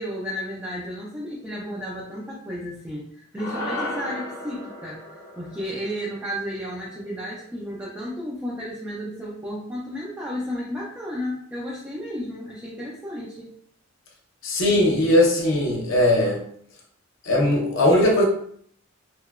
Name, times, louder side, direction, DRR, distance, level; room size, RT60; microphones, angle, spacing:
voice 1, 0.0-13.5, equal, 10° right, -5 dB, 0.3 m, -33 dB
sound 1, 3.4-7.8, left 1 dB, 20° left, 0.7 m, -36 dB
voice 2, 14.4-16.4 17.2-18.2, left 1 dB, 60° left, -1 dB, 0.6 m, -19 dB
2.9 x 2.1 x 2.3 m, 0.62 s
head